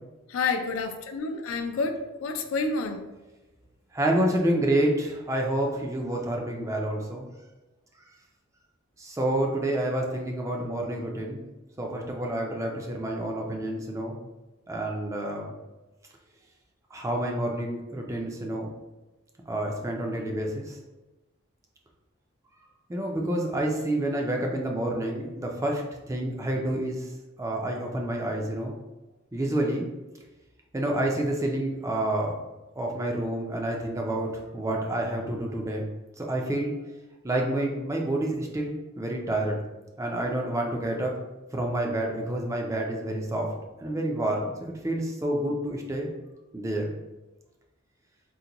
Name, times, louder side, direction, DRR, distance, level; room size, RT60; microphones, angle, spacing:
voice 1, 0.3-3.1, left 4 dB, 80° left, 6 dB, 0.4 m, -29 dB
voice 2, 3.9-7.3 9.0-11.5 11.8-14.2 14.7-15.5 16.9-18.7 19.5-20.8 22.9-25.8 26.1-27.1 27.4-28.8 29.3-29.9 30.7-32.4 32.8-35.9 36.2-36.7 37.2-39.6 40.0-41.1 41.5-43.5 43.8-44.6 44.8-46.1 46.5-46.9, right 1 dB, 15° right, 0 dB, 0.3 m, -28 dB
3.9 x 2.2 x 2.8 m, 1.1 s
head